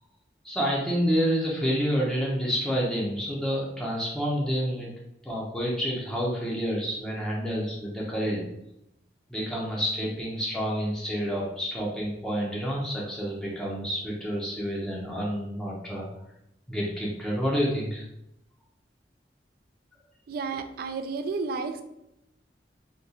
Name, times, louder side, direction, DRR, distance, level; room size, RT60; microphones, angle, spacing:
voice 1, 0.4-4.9 5.2-8.5 9.3-16.1 16.7-18.0, equal, 5° left, -5 dB, 0.6 m, -28 dB
voice 2, 20.3-21.8, right 4 dB, 55° right, 8 dB, 0.3 m, -31 dB
3.7 x 2.3 x 2.7 m, 0.82 s
head